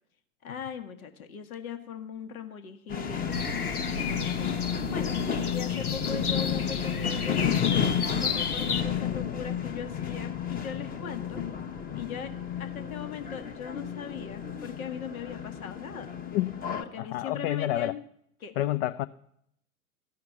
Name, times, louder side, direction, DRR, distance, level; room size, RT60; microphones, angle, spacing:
voice 1, 0.4-3.3 3.9-4.6 4.9-5.2 5.5-7.4 7.8-11.4 11.9-12.3 12.6-16.1 16.8-18.0 18.4-18.5, left 7 dB, 70° left, 8 dB, 1.4 m, -39 dB
sound 1, 2.9-16.8, left 8 dB, 20° left, 1.1 m, -31 dB
sound 2, 3.3-8.8, left 4 dB, 90° left, 1.0 m, -33 dB
voice 2, 17.0-17.9 18.6-19.1, left 14 dB, 45° left, 11 dB, 0.5 m, -28 dB
14.0 x 5.8 x 9.1 m, 0.73 s
figure-of-eight pair, 90°, 43 cm